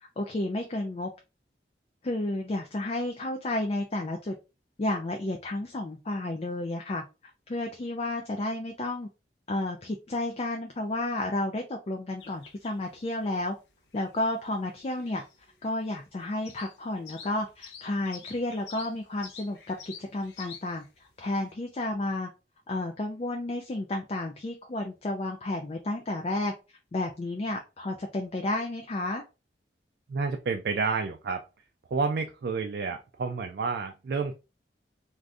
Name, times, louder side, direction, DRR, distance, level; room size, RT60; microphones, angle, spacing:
voice 1, 0.2-1.1 2.0-4.3 4.8-7.0 7.5-9.1 9.5-13.5 13.9-15.2 15.6-20.8 21.2-22.3 22.7-26.5 26.9-29.2, left 2 dB, 35° left, 2 dB, 0.4 m, -31 dB
sound 1, 12.2-21.5, left 6 dB, 85° left, 0.8 m, -49 dB
voice 2, 30.1-31.4 31.9-34.3, right 4 dB, 60° right, 5 dB, 0.3 m, -30 dB
2.5 x 2.4 x 3.3 m, 0.29 s
head